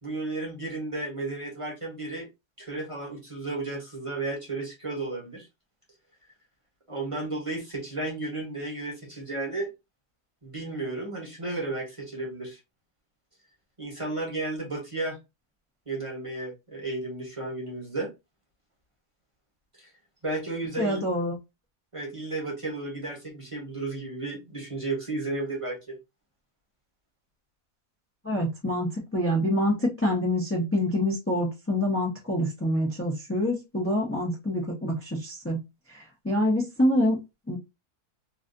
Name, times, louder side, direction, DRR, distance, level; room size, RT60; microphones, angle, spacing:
voice 1, 0.0-2.3 2.6-5.5 6.9-9.7 10.4-12.6 13.8-15.2 15.9-18.1 19.8-19.9 20.2-21.0 21.9-26.0, right 2 dB, 25° right, 1.0 m, -33 dB
voice 2, 20.8-21.4 28.2-35.6 35.9-37.2 37.5-37.6, left 1 dB, 15° left, 0.5 m, -26 dB
3.1 x 2.5 x 2.5 m
omnidirectional pair, 1.7 m